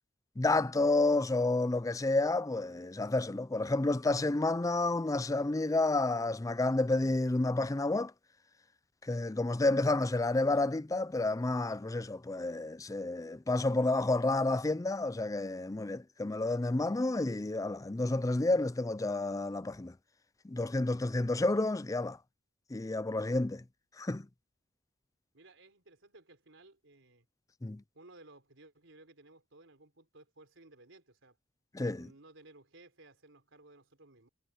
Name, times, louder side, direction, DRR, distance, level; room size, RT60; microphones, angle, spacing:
voice 1, 0.4-8.1 9.0-19.9 20.4-22.2 22.7-23.6 24.0-24.3 27.6-27.8 31.7-32.1, left 2 dB, 15° left, 0.5 m, -30 dB
voice 2, 25.3-27.3 27.9-31.4 32.0-34.3, right 2 dB, 75° right, 4.2 m, -58 dB
head